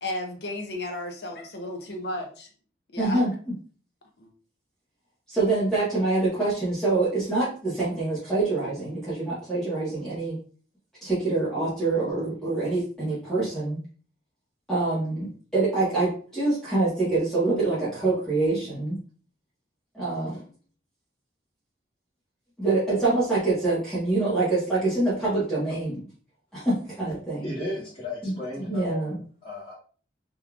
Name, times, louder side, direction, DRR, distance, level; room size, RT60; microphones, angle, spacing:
voice 1, 0.0-2.5 2.9-3.2 4.2-4.3, left 1 dB, 60° left, 3 dB, 0.8 m, -33 dB
voice 2, 3.0-3.3 5.3-10.4 11.0-13.8 14.7-19.0 19.9-20.4 22.6-26.0 26.5-27.5 28.2-29.2, right 2 dB, 5° left, -10 dB, 1.3 m, -25 dB
voice 3, 27.4-29.7, left 1 dB, 30° left, -12 dB, 1.5 m, -35 dB
3.7 x 3.1 x 2.4 m, 0.41 s
head